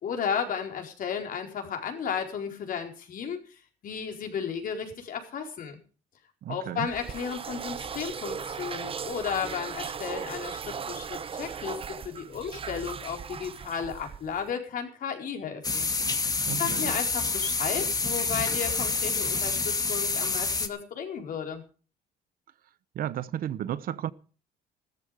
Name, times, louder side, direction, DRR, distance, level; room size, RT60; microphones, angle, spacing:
voice 1, 0.0-5.8 6.5-15.9 16.6-21.6, left 7 dB, 55° left, 4.5 m, -34 dB
voice 2, 6.4-6.9 16.4-17.0 22.9-24.1, right 11 dB, 60° right, 1.0 m, -33 dB
sound 1, 6.9-14.5, right 6 dB, 35° right, 0.9 m, -37 dB
sound 2, 15.6-20.7, left 4 dB, 20° left, 1.9 m, -28 dB
15.5 x 13.5 x 5.1 m
cardioid pair, 110°, 17 cm